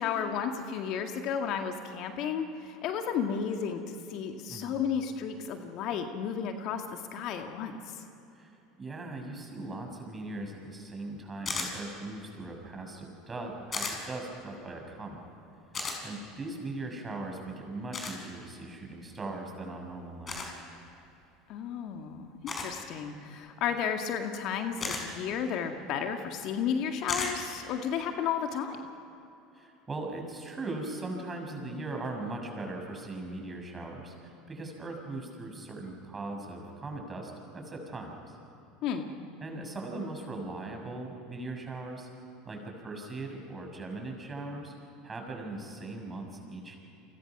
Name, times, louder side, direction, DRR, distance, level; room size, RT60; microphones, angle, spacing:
voice 1, 0.0-8.0 21.5-28.8 38.8-39.1, left 7 dB, 55° left, 5 dB, 1.9 m, -33 dB
voice 2, 8.4-15.2 16.0-20.6 29.5-38.4 39.4-42.1 42.4-44.7 45.0-46.8, right 2 dB, 25° right, 2 dB, 6.4 m, -39 dB
sound 1, 11.5-11.7 13.7-14.0 15.7-16.0 17.9-18.2 20.3-20.5 22.5-22.7 24.8-25.0 27.1-27.3, left 4 dB, 30° left, 5.9 m, -33 dB
30.0 x 24.0 x 6.1 m, 2.8 s
hypercardioid pair, 80°, 0 cm